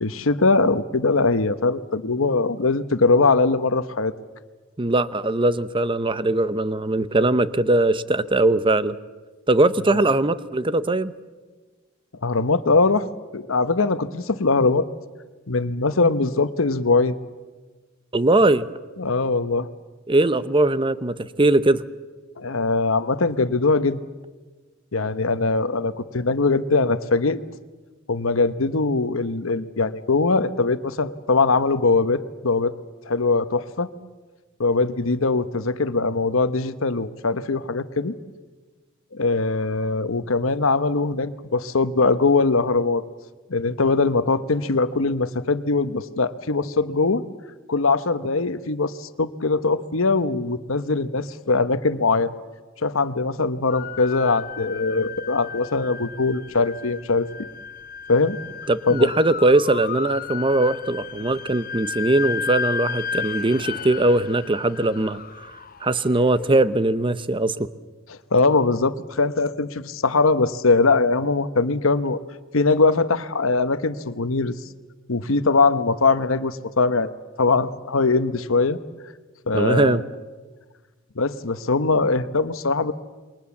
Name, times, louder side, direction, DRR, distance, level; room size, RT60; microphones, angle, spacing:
voice 1, 0.0-4.1 9.9-10.0 12.2-13.1 13.3-14.9 15.5-17.1 19.0-19.7 22.4-24.0 24.9-27.4 28.1-32.7 33.1-33.9 34.6-38.1 39.1-43.0 43.5-47.2 47.7-52.3 52.8-57.3 58.1-58.4 58.9-59.1 68.1-72.2 72.5-74.5 75.1-77.1 77.4-78.8 79.5-80.0 81.2-82.9, left 3 dB, 80° left, 12 dB, 1.1 m, -21 dB
voice 2, 4.8-9.0 9.5-11.1 18.1-18.7 20.1-21.8 58.7-65.2 65.8-67.7 79.5-80.0, right 2 dB, 25° right, 15 dB, 0.8 m, -20 dB
sound 1, 53.7-66.8, left 6 dB, 45° left, 0.9 m, -34 dB
28.0 x 22.5 x 7.2 m, 1.3 s
head